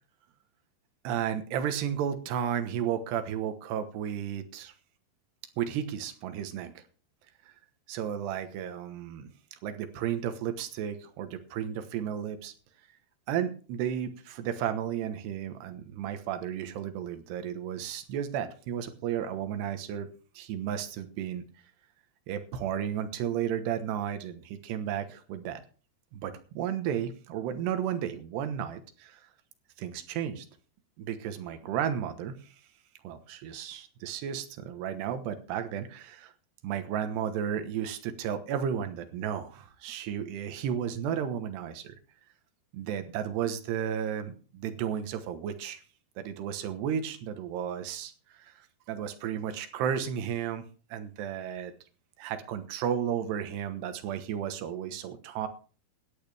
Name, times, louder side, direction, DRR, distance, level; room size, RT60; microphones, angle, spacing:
voice 1, 1.0-4.7 5.6-6.8 7.9-9.3 9.6-12.5 13.3-20.1 20.3-21.4 22.3-25.6 26.1-29.2 29.8-30.5 31.0-32.5 33.0-36.3 36.6-41.9 42.7-45.8 46.2-50.6 50.9-51.7 52.2-55.5, right 9 dB, 85° right, 9 dB, 3.4 m, -33 dB
17.0 x 11.5 x 3.5 m, 0.39 s
omnidirectional pair, 4.7 m